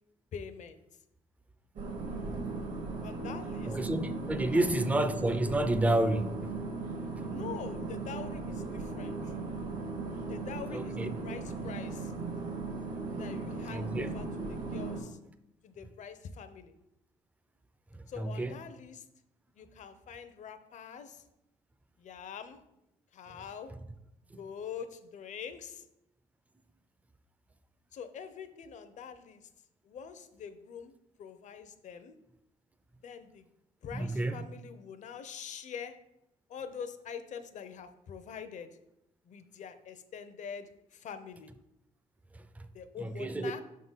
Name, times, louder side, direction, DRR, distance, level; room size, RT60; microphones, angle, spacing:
voice 1, 0.3-0.8 3.0-3.8 4.4-4.7 7.3-9.2 10.3-12.1 13.1-15.2 15.6-16.7 18.1-19.1 19.6-21.2 22.0-22.6 23.1-23.7 24.4-25.8 27.9-29.5 29.8-30.9 31.2-32.1 33.0-33.5 33.8-36.0 36.5-38.7 39.3-41.5 42.7-43.6, left 7 dB, 60° left, 0.6 m, -44 dB
sound 1, 1.8-15.0, right 3 dB, 65° right, 1.3 m, -37 dB
voice 2, 3.7-6.5 7.2-7.3 10.7-11.2 13.7-14.2 17.9-18.6 23.3-23.4 24.3-24.4 33.9-34.5 42.3-42.7 43.0-43.5, right 1 dB, 10° right, 0.4 m, -30 dB
5.8 x 3.7 x 5.6 m
cardioid pair, 115°, 14 cm